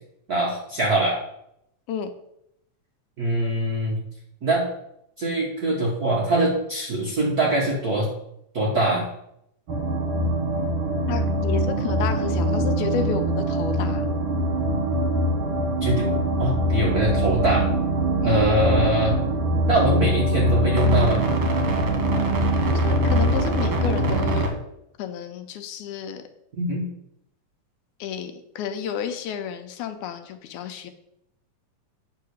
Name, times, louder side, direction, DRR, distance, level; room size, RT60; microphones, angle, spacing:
voice 1, 0.3-1.2 3.2-4.0 4.4-4.6 5.2-8.1 8.5-9.0 15.8-16.1 16.4-17.7 18.2-19.2 19.7-21.2 26.6-26.9, right 1 dB, 85° right, -3 dB, 0.8 m, -23 dB
sound 1, 9.7-24.5, right 1 dB, 55° right, 1.5 m, -23 dB
voice 2, 11.1-14.1 18.2-18.5 22.7-24.6 25.0-26.2 28.0-30.9, left 8 dB, 80° left, 8 dB, 2.0 m, -31 dB
8.6 x 3.8 x 6.4 m, 0.78 s
omnidirectional pair, 3.6 m